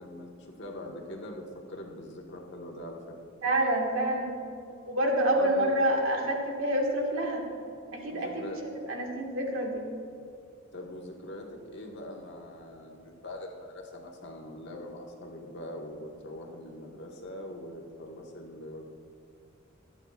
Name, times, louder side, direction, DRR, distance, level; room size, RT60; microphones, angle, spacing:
voice 1, 0.0-3.2 5.4-5.7 8.1-8.6 10.7-18.8, left 1 dB, 55° left, 0 dB, 1.4 m, -42 dB
voice 2, 3.4-4.4 4.9-7.4 7.9-8.5 8.9-9.8, right 1 dB, 70° right, 0 dB, 1.8 m, -27 dB
25.0 x 8.9 x 2.5 m, 2.5 s
head